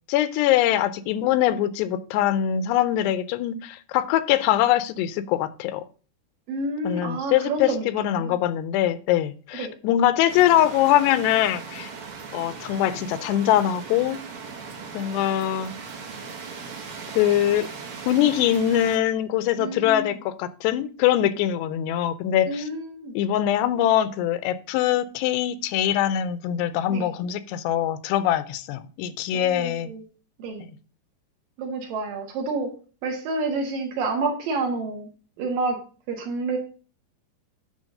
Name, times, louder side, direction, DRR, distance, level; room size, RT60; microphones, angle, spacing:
voice 1, 0.1-5.8 6.8-11.9 12.3-14.2 14.9-15.7 17.2-17.7 18.1-22.6 23.2-29.9, left 12 dB, 85° left, 2.8 m, -23 dB
voice 2, 6.5-8.4 9.5-9.7 19.6-20.2 22.5-23.2 26.9-27.1 29.3-30.0 30.4-30.7 31.6-32.7 33.0-35.1 35.4-35.8 36.1-36.6, right 3 dB, 65° right, 3.0 m, -29 dB
sound 1, 10.3-19.0, right 5 dB, 85° right, 1.1 m, -38 dB
10.0 x 3.4 x 6.4 m
omnidirectional pair, 4.8 m